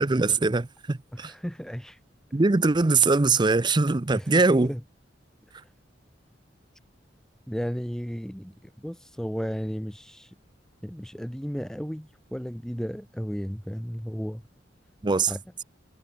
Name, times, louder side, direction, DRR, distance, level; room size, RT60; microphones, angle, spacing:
voice 1, 0.0-1.3 2.3-4.7 15.0-15.3, right 3 dB, 25° right, 0.6 m, -22 dB
voice 2, 1.1-2.0 4.1-4.8 7.5-10.3 10.8-14.4 15.3-15.4, equal, 5° left, 1.6 m, -34 dB
head